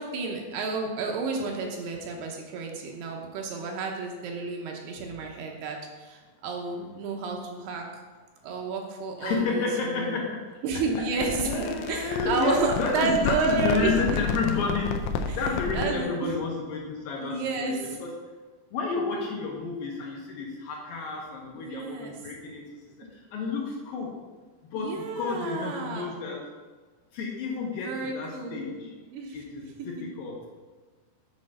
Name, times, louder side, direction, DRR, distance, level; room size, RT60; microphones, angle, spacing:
voice 1, 0.0-7.9 8.4-10.2 10.6-14.2 15.3-15.4 15.7-16.3 17.1-18.0 21.5-22.1 24.8-26.1 27.7-28.8 29.1-29.4 30.0-30.1, right 4 dB, 75° right, 1 dB, 2.8 m, -31 dB
voice 2, 9.2-10.4 11.4-18.1 18.7-22.6 23.3-24.1 24.7-26.4 27.1-28.9 29.3-30.4, left 4 dB, 70° left, -1 dB, 2.4 m, -30 dB
sound 1, 10.9-16.0, left 5 dB, 90° left, 2.9 m, -32 dB
8.7 x 4.5 x 6.4 m, 1.4 s
omnidirectional pair, 5.0 m